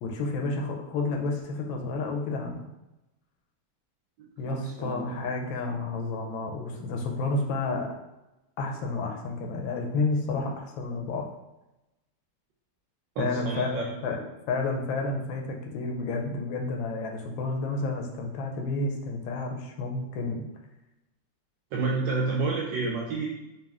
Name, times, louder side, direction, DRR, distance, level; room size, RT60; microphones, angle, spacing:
voice 1, 0.0-2.7 4.4-7.9 8.6-11.2 13.2-14.2 14.5-20.4, left 3 dB, 85° left, 2 dB, 1.3 m, -30 dB
voice 2, 4.2-5.0 13.2-13.8 21.7-23.3, right 3 dB, 75° right, -3 dB, 1.2 m, -30 dB
4.2 x 2.6 x 3.4 m, 0.96 s
omnidirectional pair, 2.1 m